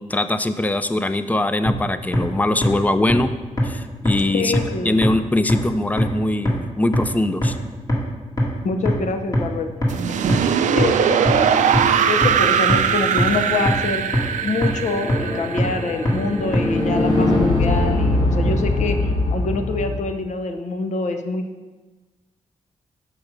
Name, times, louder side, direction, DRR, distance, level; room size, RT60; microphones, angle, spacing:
voice 1, 0.0-3.3 3.6-4.5 4.8-7.6, left 1 dB, 10° left, 11 dB, 0.4 m, -22 dB
sound 1, 1.7-1.8 2.1-2.2 2.6-2.7 3.1-3.2 3.6-3.7 4.1-4.2 4.5-4.6 5.0-5.1 5.5-5.6 6.0-6.1 6.5-6.6 6.9-7.0 7.4-7.5 7.9-8.0 8.4-8.5 8.9-9.0 9.3-9.4 9.8-9.9 10.3-10.4 10.8-10.9 11.3-11.4 11.7-11.8 12.2-12.3 12.7-12.8 13.2-13.3 13.7-13.8 14.1-14.2 14.6-14.7 15.1-15.2 15.6-15.7 16.1-16.2 16.5-16.6, left 1 dB, 30° left, 1.8 m, -18 dB
voice 2, 4.3-5.1 8.6-9.7 10.7-11.7 12.0-14.0 14.4-21.4, left 3 dB, 75° left, 6 dB, 0.7 m, -25 dB
sound 2, 9.9-16.8, right 8 dB, 85° right, 0.4 m, -21 dB
sound 3, 14.4-20.0, left 2 dB, 45° left, 2.1 m, -22 dB
6.4 x 5.9 x 5.0 m, 1.2 s
wide cardioid pair, 115°, 12 cm